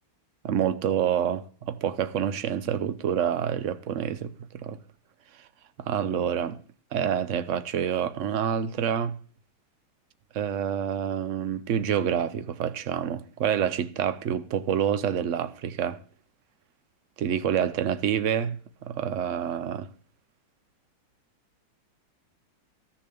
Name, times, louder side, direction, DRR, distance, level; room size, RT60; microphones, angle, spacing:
voice 1, 0.4-4.8 5.8-6.6 6.9-9.2 10.3-16.0 17.2-18.6 18.8-19.9, right 9 dB, 70° right, 0.7 m, -27 dB
13.0 x 7.0 x 6.9 m
omnidirectional pair, 2.2 m